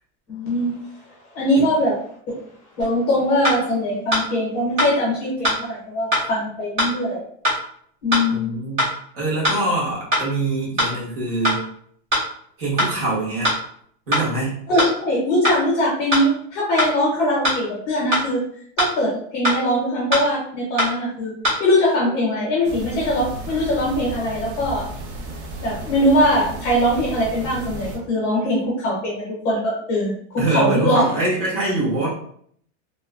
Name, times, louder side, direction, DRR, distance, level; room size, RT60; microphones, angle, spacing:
voice 1, 0.3-0.8 1.3-2.0 2.3-2.4 2.8-7.3 8.0-8.5 14.7-18.4 18.8-21.3 21.6-24.9 25.6-31.0, left 1 dB, 25° left, -5 dB, 0.7 m, -21 dB
sound 1, 2.8-2.9 3.4-3.6 4.1-4.2 4.8-4.9 5.4-5.6 6.1-6.2 6.8-6.9 7.4-7.6 8.1-8.2 8.8-8.9 9.4-9.6 10.1-10.2 10.8-10.9 11.4-11.6 12.1-12.2 12.8-12.9 13.4-13.6 14.1-14.2 14.8-14.9 15.4-15.6 16.1-16.2 16.8-16.9 17.4-17.6 18.1-18.2 18.8-18.9 19.4-19.6 20.1-20.2 20.8-20.9 21.4-21.6, equal, 15° right, 0.5 m, -20 dB
voice 2, 8.3-8.9 9.1-11.6 12.6-13.5 14.1-14.6 30.4-32.1, right 2 dB, 50° right, -6 dB, 1.4 m, -24 dB
sound 2, 22.6-28.0, right 1 dB, 70° right, 0.7 m, -34 dB
2.9 x 2.1 x 2.3 m, 0.62 s
supercardioid pair, 180°, 36 cm